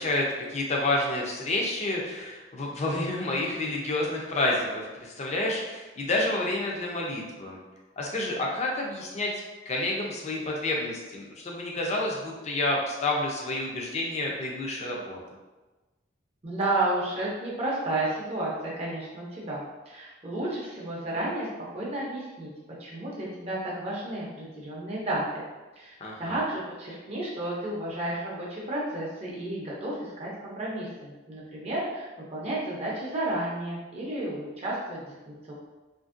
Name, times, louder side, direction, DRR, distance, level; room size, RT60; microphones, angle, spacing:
voice 1, 0.0-7.6 8.0-9.3 9.7-15.2 26.0-26.4, left 2 dB, 35° left, -1 dB, 0.5 m, -29 dB
voice 2, 16.4-22.5 22.8-25.5 25.8-25.9 26.2-35.5, right 1 dB, 30° right, -5 dB, 0.5 m, -32 dB
2.8 x 2.5 x 2.4 m, 1.2 s
head